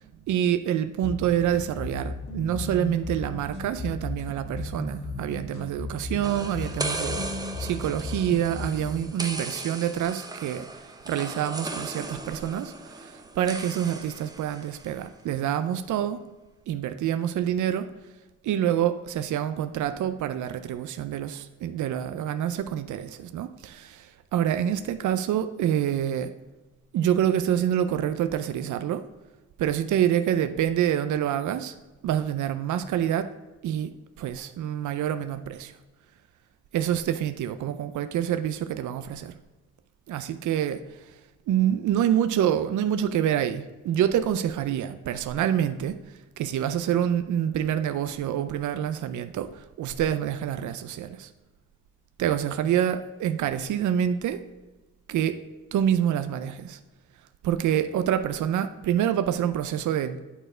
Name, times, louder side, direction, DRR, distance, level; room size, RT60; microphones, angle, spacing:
voice 1, 0.3-7.3 7.6-16.2 16.7-17.9 18.4-26.3 26.9-29.0 29.6-31.7 32.0-33.3 33.6-35.7 36.7-39.3 40.1-41.2 41.5-51.3 52.2-54.4 55.1-55.4 55.7-56.8 57.4-60.2, right 10 dB, 80° right, 10 dB, 0.5 m, -27 dB
sound 1, 1.0-9.0, left 2 dB, 85° left, 1.4 m, -35 dB
sound 2, 6.2-15.0, right 2 dB, 15° right, 0.5 m, -37 dB
9.1 x 4.3 x 4.9 m, 1.2 s
wide cardioid pair, 175°, 30 cm